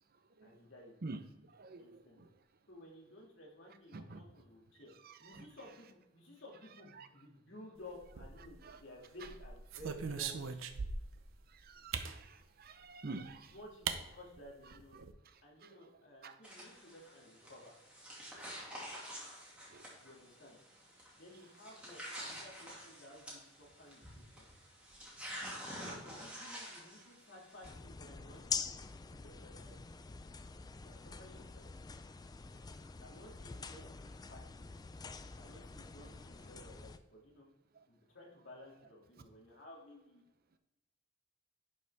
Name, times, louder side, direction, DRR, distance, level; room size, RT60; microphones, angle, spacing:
voice 1, 0.4-1.0 1.8-2.2 2.7-4.9 5.2-10.6 13.5-14.9 15.4-17.7 20.0-20.6 21.1-24.5 25.8-28.7 29.1-30.0 30.8-31.6 33.0-34.7 35.4-37.5 37.9-40.2, left 1 dB, 65° left, 2.4 m, -55 dB
voice 2, 1.5-2.3 3.9-4.2 5.1-5.4 7.0-7.1 8.6-8.8 11.6-13.5 15.6-15.7 16.2-16.3 18.3-18.5 19.7-19.8, right 3 dB, 50° right, 0.7 m, -48 dB
sound 1, 8.0-8.7 9.2-11.2 11.9-12.2 13.3-13.4 13.9-14.0 14.3-14.4 14.7-15.1, right 6 dB, 85° right, 0.7 m, -40 dB
sound 2, 16.4-27.7, equal, 5° right, 2.3 m, -49 dB
sound 3, 27.6-37.0, left 5 dB, 20° left, 0.3 m, -46 dB
11.0 x 5.4 x 3.5 m
head